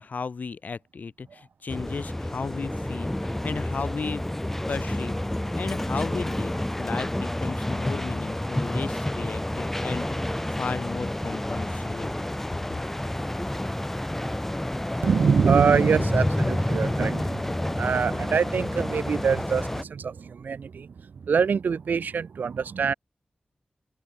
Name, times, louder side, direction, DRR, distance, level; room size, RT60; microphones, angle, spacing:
voice 1, 0.0-5.2 5.6-12.1, left 5 dB, 70° left, 0.8 m, -35 dB
sound 1, 1.7-19.8, left 1 dB, 10° left, 0.4 m, -29 dB
voice 2, 15.0-22.9, right 6 dB, 85° right, 0.4 m, -25 dB
wide cardioid pair, 95°, 3 cm